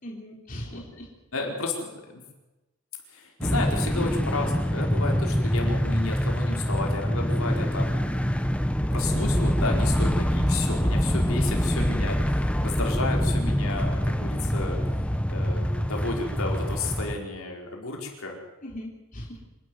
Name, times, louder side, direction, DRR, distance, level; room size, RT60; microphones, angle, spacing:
voice 1, 0.0-1.1 11.4-11.8 18.6-19.4, equal, 35° left, -1 dB, 3.5 m, -39 dB
voice 2, 1.3-2.2 3.1-14.8 15.3-18.4, left 3 dB, 70° left, 1 dB, 4.6 m, -32 dB
sound 1, 3.4-17.1, equal, 5° left, 1.0 m, -25 dB
26.5 x 12.0 x 9.4 m, 1.1 s
head